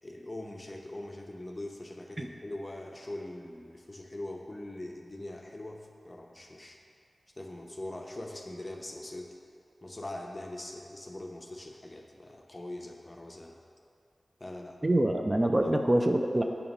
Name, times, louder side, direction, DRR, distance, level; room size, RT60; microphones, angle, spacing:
voice 1, 0.0-6.8 7.4-9.3 9.8-13.6 14.4-14.8 15.6-15.7, left 1 dB, 30° left, 1 dB, 0.7 m, -42 dB
voice 2, 14.8-16.4, right 1 dB, 30° right, 3 dB, 0.4 m, -25 dB
8.6 x 2.9 x 5.4 m, 2.5 s
wide cardioid pair, 65°, 0 cm